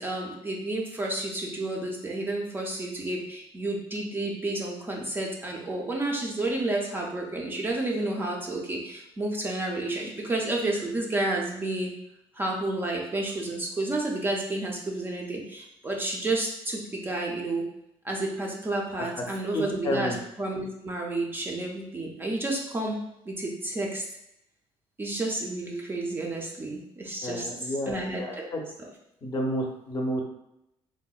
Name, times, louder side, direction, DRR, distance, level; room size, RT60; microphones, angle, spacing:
voice 1, 0.0-11.9 12.3-17.6 18.0-23.0 23.3-24.0 25.0-28.5, right 2 dB, 20° right, -1 dB, 0.4 m, -31 dB
voice 2, 19.5-20.2 27.2-28.6 29.2-30.2, equal, 35° left, 1 dB, 0.5 m, -30 dB
3.6 x 2.0 x 2.3 m, 0.82 s
cardioid pair, 140°, 10 cm